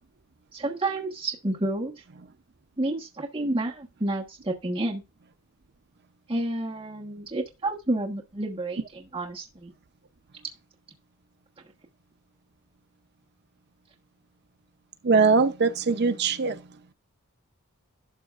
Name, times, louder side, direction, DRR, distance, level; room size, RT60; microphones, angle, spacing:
voice 1, 0.5-2.0 2.8-5.0 6.3-9.7, right 2 dB, 25° right, 1.1 m, -30 dB
voice 2, 15.0-16.6, right 4 dB, 50° right, 0.6 m, -21 dB
12.0 x 6.2 x 2.4 m
head